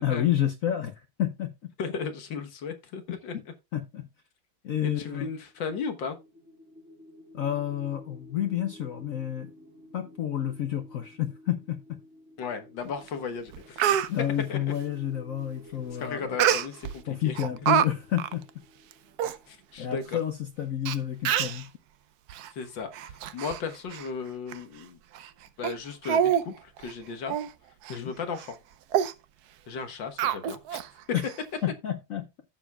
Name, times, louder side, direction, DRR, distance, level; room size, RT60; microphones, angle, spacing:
voice 1, 0.0-1.7 3.1-3.2 3.7-4.1 4.6-5.3 7.3-9.5 9.9-12.0 14.1-16.4 17.1-18.5 19.8-21.7 27.9-28.1 31.1-31.3 31.6-32.3, left 11 dB, 85° left, 0.7 m, -30 dB
voice 2, 1.8-3.3 4.8-6.2 12.4-14.1 14.5-14.6 16.0-17.4 19.5-20.2 22.5-25.0 25.6-27.3 27.9-28.6 29.7-30.8, left 5 dB, 60° left, 1.8 m, -36 dB
sound 1, 5.5-20.4, left 1 dB, 35° right, 4.9 m, -52 dB
Speech, 13.1-13.2 13.5-14.1 16.4-16.9 17.4-17.9 18.2-18.3 18.9-19.0 19.2-19.4 20.1-20.2 20.9-21.0 21.2-21.6 22.3-22.5 22.9-23.6 23.9-24.1 24.5-24.6 25.1-25.3 25.6-25.7 26.0-26.4 26.8-26.9 27.3-27.5 27.8-28.0 28.4-28.5 28.9-29.1 30.2-30.9 31.2-31.3, right 9 dB, 75° right, 0.9 m, -26 dB
14.5 x 7.0 x 2.3 m
omnidirectional pair, 2.4 m